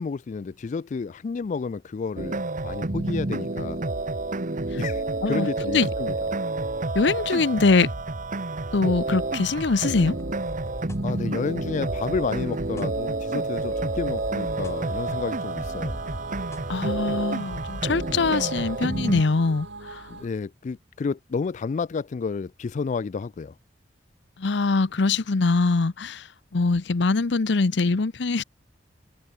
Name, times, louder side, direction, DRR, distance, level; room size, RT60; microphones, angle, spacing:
voice 1, 0.0-3.8 4.8-6.3 11.0-16.0 20.1-23.5, left 5 dB, 40° left, 0.3 m, -31 dB
sound 1, 2.2-19.2, right 2 dB, 45° right, 1.3 m, -29 dB
voice 2, 6.9-7.9 8.7-10.2 16.7-20.0 24.4-26.3 26.5-28.4, left 3 dB, 70° left, 0.7 m, -23 dB
sound 2, 9.1-20.3, right 3 dB, 85° right, 3.2 m, -44 dB
sound 3, 10.0-18.5, equal, 15° left, 3.9 m, -42 dB
head